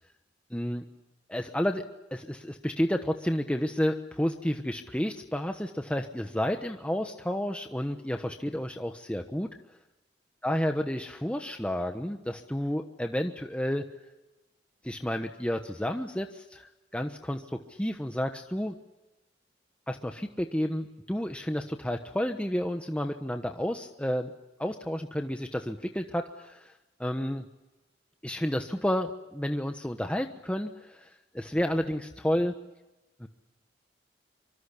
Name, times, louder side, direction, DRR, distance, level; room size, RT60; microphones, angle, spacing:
voice 1, 0.5-0.8 1.3-1.8 2.1-9.5 10.4-13.9 14.8-16.7 16.9-18.7 19.9-24.3 24.6-26.7 27.0-27.5 28.2-32.5 33.2-33.3, equal, 5° left, 5 dB, 1.2 m, -31 dB
25.5 x 25.0 x 8.4 m, 1.1 s
head